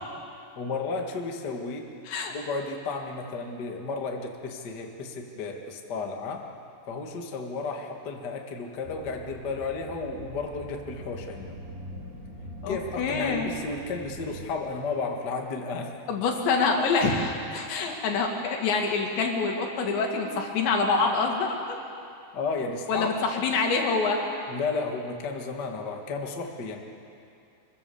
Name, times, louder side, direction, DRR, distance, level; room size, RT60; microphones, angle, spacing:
voice 1, 0.5-1.9 2.3-6.4 6.9-11.6 12.7-16.0 17.5-17.7 22.3-23.1 24.5-26.8, left 4 dB, 40° left, 2 dB, 1.4 m, -33 dB
sound 1, 8.8-14.5, equal, 65° right, 5.7 m, -42 dB
voice 2, 12.6-13.5 16.1-21.8 22.9-24.2, left 4 dB, 85° left, 2 dB, 4.6 m, -26 dB
26.5 x 23.0 x 7.1 m, 2.5 s
omnidirectional pair, 5.0 m